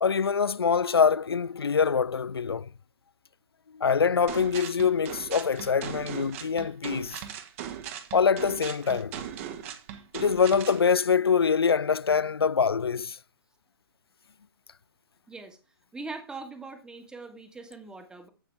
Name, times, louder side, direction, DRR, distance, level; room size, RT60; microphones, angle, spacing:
voice 1, 0.0-2.7 3.7-7.2 8.1-9.1 10.1-13.2, left 6 dB, 75° left, 0.4 m, -24 dB
sound 1, 4.3-10.8, right 9 dB, 35° right, 1.6 m, -39 dB
voice 2, 15.3-15.6 15.9-18.3, right 3 dB, 5° right, 1.7 m, -41 dB
15.5 x 5.8 x 3.4 m
figure-of-eight pair, 125°, 13 cm